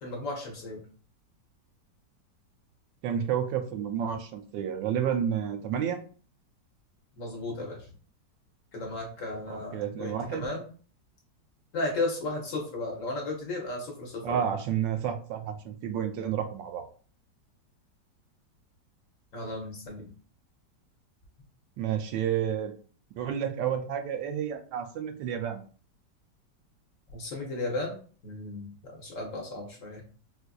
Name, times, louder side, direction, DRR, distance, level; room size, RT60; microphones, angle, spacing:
voice 1, 0.0-0.8 7.2-7.9 8.7-10.7 11.7-14.5 19.3-20.1 27.1-30.0, left 2 dB, 55° left, 0 dB, 1.0 m, -35 dB
voice 2, 3.0-6.0 9.5-10.5 14.2-16.9 21.8-22.7 23.1-25.6, right 9 dB, 85° right, 7 dB, 1.3 m, -30 dB
4.1 x 2.4 x 2.3 m, 0.41 s
omnidirectional pair, 1.9 m